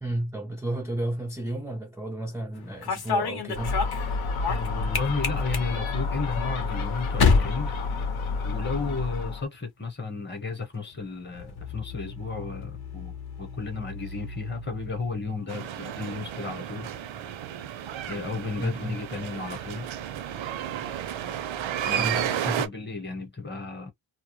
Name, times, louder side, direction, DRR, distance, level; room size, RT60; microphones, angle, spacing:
voice 1, 0.0-3.8 18.6-19.0 22.0-22.6, right 1 dB, 5° right, 0.4 m, -32 dB
sound 1, 2.5-8.7 9.0-9.6 10.6-22.3, left 5 dB, 50° left, 0.8 m, -33 dB
Gull seagull, 3.5-9.4, left 4 dB, 80° left, 0.9 m, -30 dB
voice 2, 4.5-7.8 8.4-16.9 18.1-19.9 21.8-23.9, left 4 dB, 20° left, 0.9 m, -33 dB
sound 2, 15.5-22.7, right 10 dB, 70° right, 0.6 m, -32 dB
2.2 x 2.0 x 2.9 m
wide cardioid pair, 120°, 48 cm